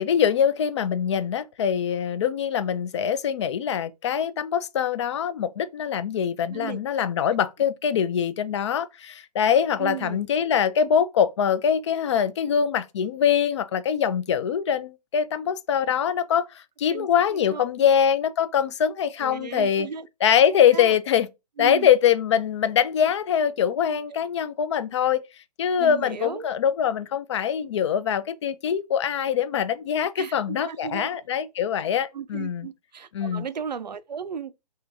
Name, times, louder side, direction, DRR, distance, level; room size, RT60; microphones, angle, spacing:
voice 1, 0.0-19.9 20.2-21.3 21.6-25.2 25.6-32.7 33.1-33.4, left 8 dB, 45° left, 0.4 m, -23 dB
voice 2, 6.5-6.8 9.8-10.3 16.9-17.9 19.2-20.1 20.7-21.0 21.6-21.9 25.8-26.5 30.2-31.1 32.1-34.5, right 7 dB, 85° right, 0.5 m, -35 dB
3.0 x 2.7 x 3.4 m
figure-of-eight pair, 135°, 21 cm